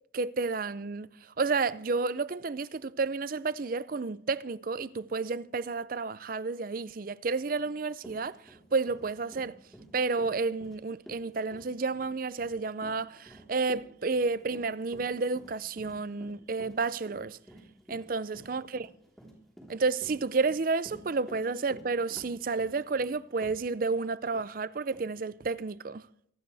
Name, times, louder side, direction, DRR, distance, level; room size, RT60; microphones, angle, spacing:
voice 1, 0.1-1.1 1.4-8.4 8.7-9.5 9.9-17.4 17.9-18.9 19.7-26.0, right 4 dB, 45° right, 0.5 m, -31 dB
Run, 7.6-7.7 8.0-24.0 24.3-24.5 24.9-25.0, right 1 dB, ahead, 3.9 m, -51 dB
24.5 x 12.5 x 3.4 m
head